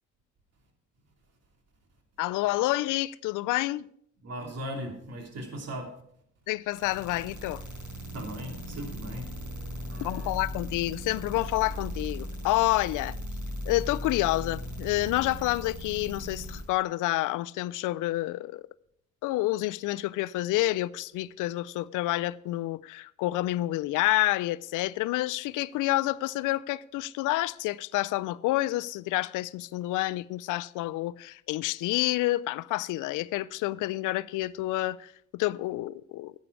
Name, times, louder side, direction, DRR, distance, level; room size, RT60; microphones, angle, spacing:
voice 1, 2.2-3.9 6.5-7.6 10.0-13.2 13.7-18.6 19.2-36.3, left 17 dB, 90° left, 0.5 m, -29 dB
voice 2, 4.2-5.9 8.1-9.3 9.9-10.3, equal, 55° right, 2.9 m, -38 dB
sound 1, 6.7-16.6, equal, 80° right, 5.1 m, -38 dB
11.0 x 8.4 x 4.8 m
cardioid pair, 90°, 30 cm